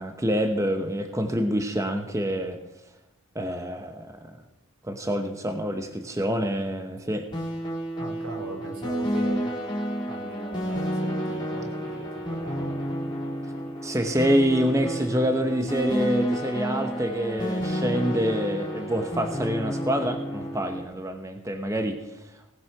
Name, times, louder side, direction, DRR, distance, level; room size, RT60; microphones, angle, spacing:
voice 1, 0.0-2.6 3.3-4.3 4.8-7.2 13.8-22.3, equal, 15° right, 5 dB, 1.0 m, -26 dB
sound 1, 7.3-20.8, equal, 20° left, 3.9 m, -30 dB
voice 2, 8.0-9.5 10.1-12.9, right 1 dB, 75° right, 3 dB, 3.3 m, -39 dB
18.5 x 8.1 x 6.0 m, 0.92 s
head